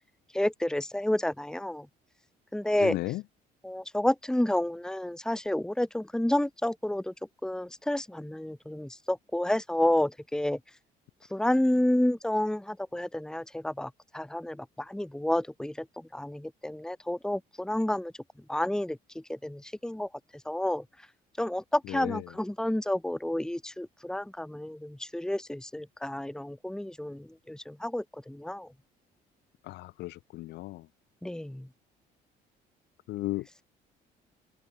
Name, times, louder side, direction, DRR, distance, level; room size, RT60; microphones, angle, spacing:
voice 1, 0.3-1.9 2.5-3.0 3.6-7.1 7.4-10.6 11.3-15.9 16.1-18.1 18.5-19.0 19.3-20.1 20.5-20.8 21.4-28.7 31.2-31.7, left 1 dB, 5° left, 2.3 m, -30 dB
voice 2, 2.8-3.2 21.9-22.2 29.7-30.9 33.1-33.6, left 18 dB, 85° left, 6.1 m, -35 dB
open air
cardioid pair, 110°, 17 cm